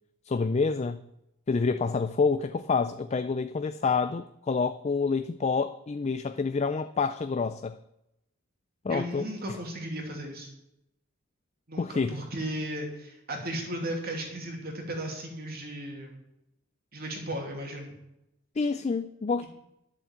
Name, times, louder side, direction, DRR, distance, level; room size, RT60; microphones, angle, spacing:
voice 1, 0.3-1.0 1.5-7.8 8.8-9.3 11.8-12.2 18.6-19.5, left 4 dB, 30° left, 0.4 m, -28 dB
voice 2, 8.9-10.5 11.7-16.2 16.9-18.0, right 1 dB, 45° right, 2.8 m, -35 dB
11.5 x 7.2 x 8.3 m
head